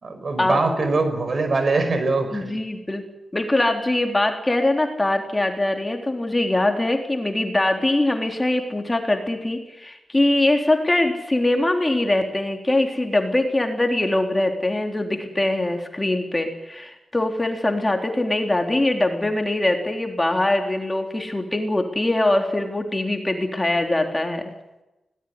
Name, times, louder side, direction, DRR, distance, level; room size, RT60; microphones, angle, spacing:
voice 1, 0.0-2.5, right 3 dB, 50° right, 8 dB, 5.8 m, -22 dB
voice 2, 2.3-3.0 3.3-24.5, left 1 dB, 20° left, 3 dB, 3.8 m, -22 dB
21.0 x 18.5 x 9.8 m, 0.98 s
cardioid pair, 70°, 0 cm